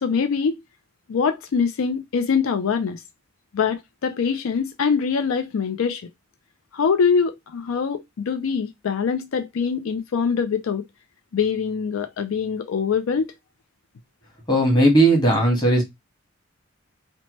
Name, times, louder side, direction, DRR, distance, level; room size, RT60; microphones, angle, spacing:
voice 1, 0.0-0.6 1.1-3.0 3.5-6.0 6.7-10.8 11.3-13.3, left 6 dB, 85° left, 0.4 m, -23 dB
voice 2, 14.5-15.8, right 1 dB, 20° left, 1.2 m, -17 dB
2.8 x 2.1 x 2.9 m
head